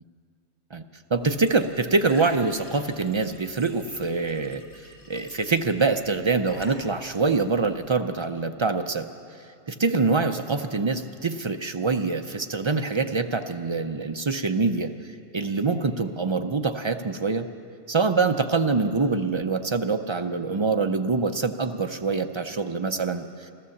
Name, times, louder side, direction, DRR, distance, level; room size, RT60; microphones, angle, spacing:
Glass / Trickle dribble / Fill (with liquid), 1.1-7.9, left 1 dB, 60° left, 2.6 m, -48 dB
voice 1, 1.1-9.1 9.7-17.5 17.9-23.5, right 4 dB, 40° right, 7 dB, 0.4 m, -25 dB
14.5 x 14.0 x 7.1 m, 2.6 s
omnidirectional pair, 1.1 m